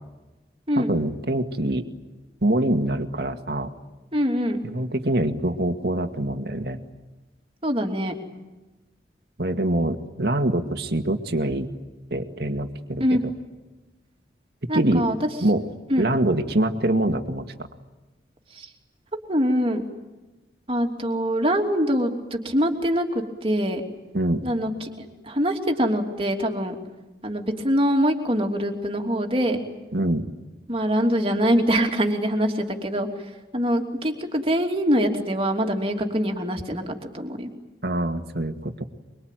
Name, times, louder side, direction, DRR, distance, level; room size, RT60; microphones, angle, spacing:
voice 1, 0.8-1.8 2.4-3.7 4.6-6.8 9.4-11.7 12.1-13.2 14.7-15.1 15.4-15.6 16.0-17.4 24.1-24.4 29.9-30.3 37.8-38.8, right 1 dB, 60° right, 6 dB, 2.1 m, -24 dB
voice 2, 4.1-4.6 7.6-8.1 13.0-13.2 14.7-15.2 15.9-16.1 18.5-18.7 19.3-19.8 20.7-23.8 24.4-26.7 27.2-29.6 30.7-33.1 33.5-37.5, equal, 30° right, 3 dB, 3.0 m, -24 dB
24.0 x 24.0 x 9.3 m, 1.1 s
head